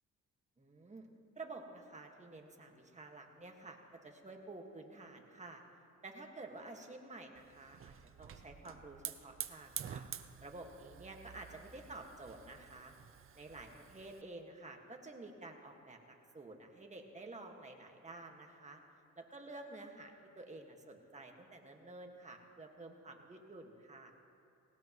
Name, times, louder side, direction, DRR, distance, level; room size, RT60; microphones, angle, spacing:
voice 1, 0.6-1.1 1.3-5.6 6.0-10.0 10.4-12.9 13.3-18.8 19.1-24.1, right 2 dB, 25° right, 2 dB, 1.7 m, -51 dB
Hiss / Fire, 7.4-14.2, right 9 dB, 45° right, 0.7 m, -49 dB
19.0 x 18.0 x 3.1 m, 2.5 s
cardioid pair, 90°, 30 cm